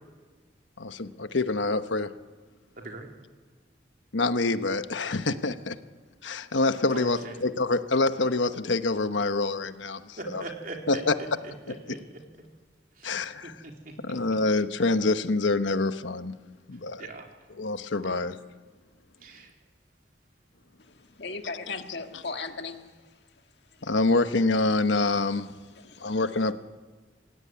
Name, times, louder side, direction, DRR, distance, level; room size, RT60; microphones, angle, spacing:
voice 1, 0.8-2.1 4.1-5.8 6.2-10.4 10.9-11.1 11.7-11.9 13.0-13.6 14.0-16.4 16.7-17.1 17.6-18.4 23.8-25.5 26.0-26.5, left 3 dB, 90° left, 10 dB, 1.1 m, -26 dB
voice 2, 2.8-3.1 6.9-7.3 10.2-11.0 11.7-12.0 13.0-13.1 13.4-13.9 17.0-17.3 19.2-19.5, right 2 dB, 50° right, 1 dB, 3.8 m, -40 dB
voice 3, 21.2-22.8 23.8-23.9 25.7-26.2, left 3 dB, 65° left, 5 dB, 2.0 m, -37 dB
27.5 x 16.0 x 9.7 m, 1.4 s
head